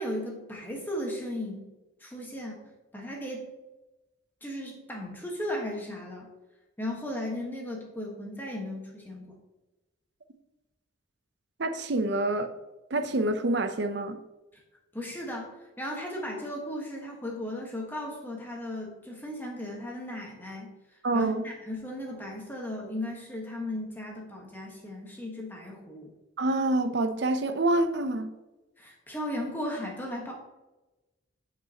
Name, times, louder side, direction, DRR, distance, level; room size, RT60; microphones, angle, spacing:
voice 1, 0.0-1.7 2.0-2.6 2.9-3.5 4.4-6.3 6.8-9.4 14.9-20.7 21.1-26.1 28.8-30.3, left 1 dB, 10° left, 1.3 m, -36 dB
voice 2, 11.6-12.5 12.9-14.2 21.0-21.4 26.4-28.3, right 2 dB, 60° right, 0.6 m, -26 dB
8.8 x 5.1 x 2.8 m
head